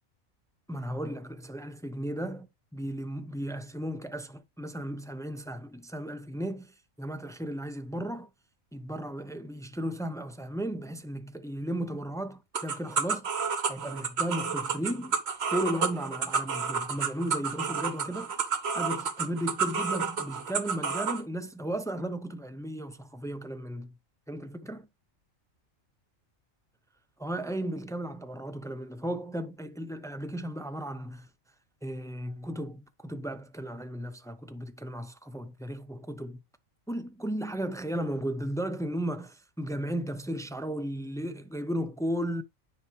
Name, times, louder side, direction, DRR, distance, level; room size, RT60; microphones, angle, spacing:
voice 1, 0.7-2.5 2.7-8.3 8.7-13.3 13.7-15.2 15.5-18.3 18.7-23.9 24.3-24.8 27.2-31.3 31.8-36.4 36.9-42.4, right 1 dB, 5° left, 0.5 m, -35 dB
sound 1, 12.5-21.2, right 5 dB, 55° right, 1.2 m, -30 dB
9.7 x 5.2 x 3.1 m
omnidirectional pair, 1.4 m